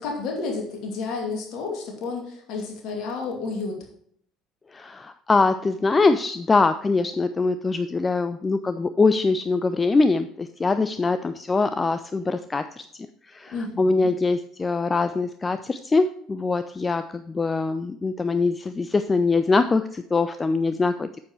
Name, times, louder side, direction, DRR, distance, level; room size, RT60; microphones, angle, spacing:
voice 1, 0.0-3.9 13.5-14.1, left 4 dB, 50° left, 1 dB, 2.4 m, -31 dB
voice 2, 4.7-12.9 13.3-21.1, left 3 dB, 20° left, 11 dB, 0.4 m, -23 dB
9.2 x 7.5 x 3.1 m, 0.65 s
figure-of-eight pair, 60°, 0 cm